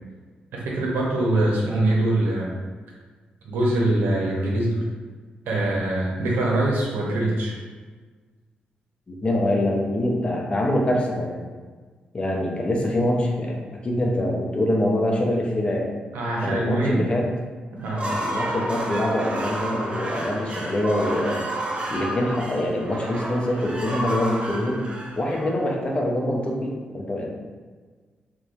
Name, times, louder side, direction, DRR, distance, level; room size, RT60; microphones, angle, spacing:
voice 1, 0.5-2.5 3.4-4.8 5.5-7.5 16.1-17.0 17.7-18.0, right 1 dB, 90° right, -3 dB, 0.6 m, -23 dB
voice 2, 9.1-11.4 12.1-15.9 16.4-17.3 18.0-21.4 21.9-24.9 25.1-27.3, left 1 dB, 35° left, -1 dB, 0.6 m, -24 dB
sound 1, 17.8-25.9, right 1 dB, 35° right, 0.5 m, -31 dB
3.0 x 2.2 x 2.4 m, 1.4 s
cardioid pair, 70°, 3 cm